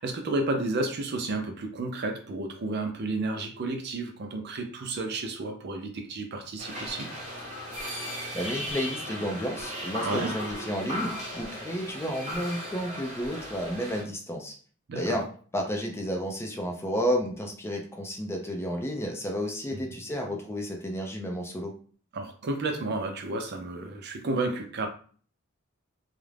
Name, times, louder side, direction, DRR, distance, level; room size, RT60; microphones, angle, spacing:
voice 1, 0.0-7.1 10.0-10.3 14.9-15.2 19.7-19.9 22.1-24.9, right 2 dB, 50° right, 5 dB, 0.5 m, -31 dB
sound 1, 6.6-14.0, equal, 35° right, 0.9 m, -36 dB
voice 2, 8.3-14.5 14.9-15.2 15.5-21.7, equal, 10° left, 1 dB, 0.4 m, -31 dB
2.4 x 2.0 x 3.2 m, 0.43 s
head